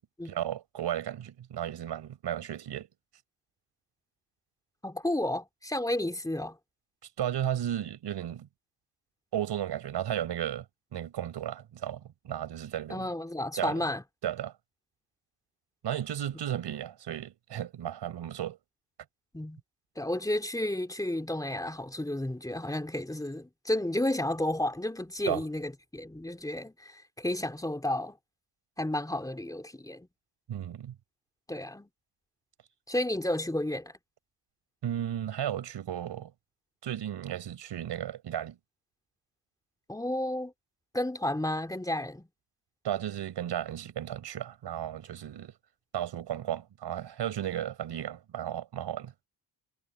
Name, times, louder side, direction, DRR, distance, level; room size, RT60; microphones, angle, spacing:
voice 1, 0.2-2.9 7.2-8.5 9.3-10.6 10.9-13.1 13.6-13.8 14.2-14.5 15.8-18.6 25.3-25.4 30.5-30.9 34.8-36.3 36.8-38.6 42.8-45.5 45.9-49.1, right 10 dB, 75° right, 4.9 m, -34 dB
voice 2, 4.8-6.6 12.9-14.0 19.3-19.6 19.9-28.2 28.8-30.1 31.5-31.9 32.9-33.9 39.9-40.5 40.9-42.3, left 1 dB, 10° left, 3.3 m, -32 dB
cardioid pair, 105°, 41 cm